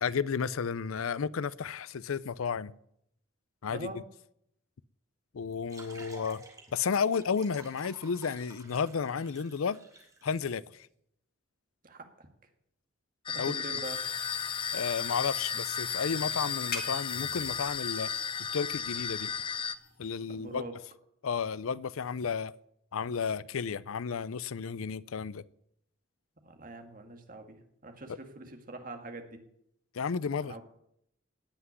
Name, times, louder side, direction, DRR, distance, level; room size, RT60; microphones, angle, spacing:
voice 1, 0.0-2.7 3.6-4.0 5.3-6.4 6.7-9.8 10.2-10.9 13.4-13.6 14.7-18.1 18.4-19.3 20.0-20.6 21.2-22.5 22.9-25.4 28.1-28.2 29.9-30.6, left 6 dB, 90° left, 0.5 m, -32 dB
voice 2, 3.7-4.0 11.8-12.3 13.5-14.0 20.3-20.7 26.4-29.4 30.5-30.6, right 2 dB, 40° right, 2.0 m, -43 dB
sound 1, 5.5-10.4, right 2 dB, 15° right, 2.8 m, -53 dB
sound 2, 13.3-19.8, left 6 dB, 25° left, 0.5 m, -34 dB
sound 3, 13.8-20.6, left 6 dB, 45° left, 2.0 m, -43 dB
17.5 x 5.9 x 9.7 m
head